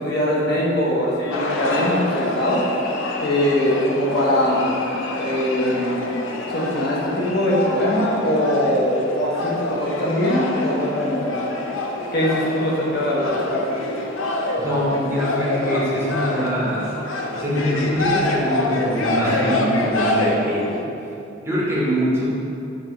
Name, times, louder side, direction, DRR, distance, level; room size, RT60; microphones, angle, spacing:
voice 1, 0.0-2.6 3.2-4.7 5.2-6.1 6.5-11.4 12.1-13.6, left 1 dB, 50° left, -4 dB, 0.7 m, -21 dB
sound 1, 1.3-20.8, left 2 dB, 75° left, 0.4 m, -26 dB
voice 2, 14.6-16.9 17.3-20.9 21.4-22.2, equal, 15° right, -6 dB, 0.6 m, -23 dB
5.4 x 2.4 x 2.9 m, 2.7 s
head